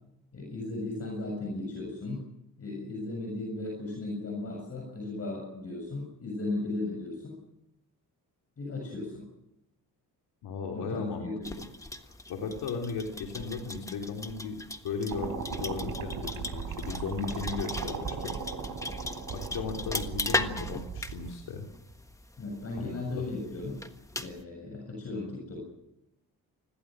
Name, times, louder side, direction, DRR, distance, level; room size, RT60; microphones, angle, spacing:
voice 1, 0.3-2.3 2.6-7.4 8.6-9.2 10.7-11.6 22.4-23.8 24.2-25.6, left 2 dB, 40° left, 1 dB, 7.1 m, -36 dB
voice 2, 10.4-11.3 12.0-14.6 14.8-18.3 19.3-21.7 22.8-22.9 23.2-23.3, left 5 dB, 90° left, 1 dB, 3.7 m, -36 dB
sound 1, 11.4-24.4, left 2 dB, 10° left, 1.4 m, -38 dB
sound 2, 15.1-21.3, right 5 dB, 55° right, 6.1 m, -37 dB
28.5 x 21.5 x 6.3 m, 0.86 s
cardioid pair, 135°, 38 cm